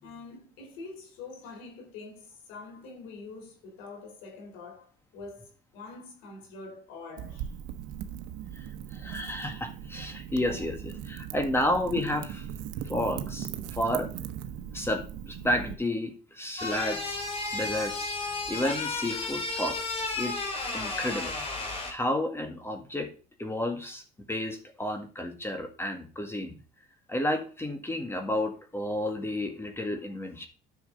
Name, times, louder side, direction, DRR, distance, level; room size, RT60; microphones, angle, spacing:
voice 1, 0.0-7.5, left 3 dB, 85° left, 4.0 m, -45 dB
Wind / Fire, 7.2-15.7, right 9 dB, 80° right, 1.1 m, -39 dB
voice 2, 8.5-12.5 12.8-14.1 14.7-17.2 17.5-18.1 18.5-21.3 21.9-23.1 23.4-26.6 27.1-30.5, left 1 dB, 10° left, 1.8 m, -31 dB
creaking wooden door moving very slowly weird noise foley, 16.6-21.9, left 3 dB, 30° left, 3.0 m, -33 dB
9.6 x 6.5 x 3.9 m
cardioid pair, 105°, 20 cm